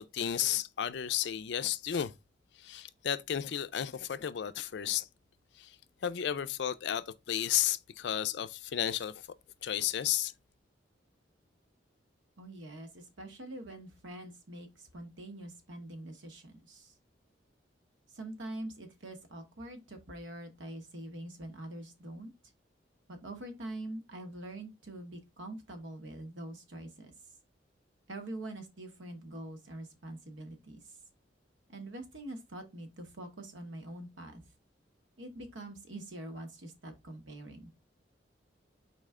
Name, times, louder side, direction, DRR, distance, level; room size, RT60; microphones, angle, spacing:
voice 1, 0.0-2.1 2.6-5.1 5.6-5.8 6.0-9.3 9.6-10.3, left 10 dB, 65° left, 0.4 m, -33 dB
voice 2, 12.4-16.9 18.1-22.3 23.1-27.1 28.1-30.8 31.7-34.4 35.2-37.7, right 1 dB, 85° right, 1.1 m, -44 dB
4.1 x 3.2 x 3.6 m
head